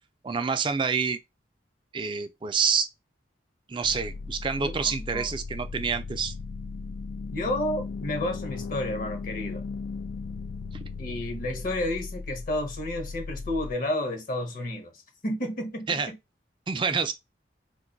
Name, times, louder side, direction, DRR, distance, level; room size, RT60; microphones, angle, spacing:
voice 1, 0.2-1.2 1.9-2.9 3.7-6.3 15.9-16.1 16.7-17.1, right 5 dB, 25° right, 0.3 m, -27 dB
sound 1, 3.8-13.7, left 4 dB, 85° left, 0.3 m, -37 dB
voice 2, 4.6-5.3 7.3-9.6 11.0-16.2, left 1 dB, 45° left, 0.7 m, -31 dB
2.6 x 2.3 x 3.8 m
head